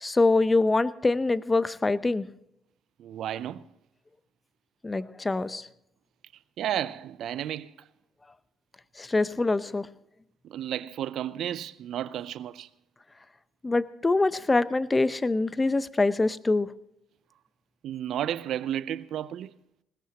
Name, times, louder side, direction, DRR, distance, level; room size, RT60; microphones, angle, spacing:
voice 1, 0.0-2.3 4.8-5.7 9.0-9.9 13.6-16.7, left 3 dB, 25° left, 0.8 m, -24 dB
voice 2, 3.0-3.6 6.6-7.9 10.4-12.7 17.8-19.5, right 11 dB, 70° right, 0.6 m, -32 dB
20.5 x 18.0 x 2.9 m
hypercardioid pair, 55°, 0 cm